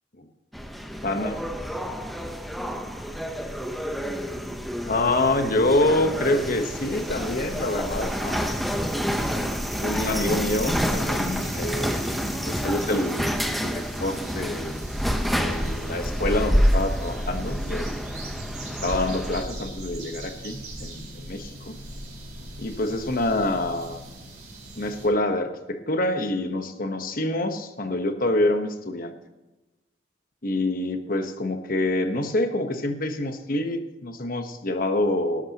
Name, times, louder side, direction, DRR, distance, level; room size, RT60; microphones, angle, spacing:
sound 1, 0.5-19.4, equal, ahead, 0.9 m, -28 dB
voice 1, 1.0-1.4 4.9-8.5 9.8-14.9 15.3-18.1 18.7-21.8 22.6-24.0 24.8-29.1 30.4-35.4, left 2 dB, 55° left, 7 dB, 1.2 m, -26 dB
sound 2, 6.2-25.1, right 1 dB, 45° right, 4.7 m, -40 dB
18.5 x 12.5 x 2.9 m, 1.1 s
head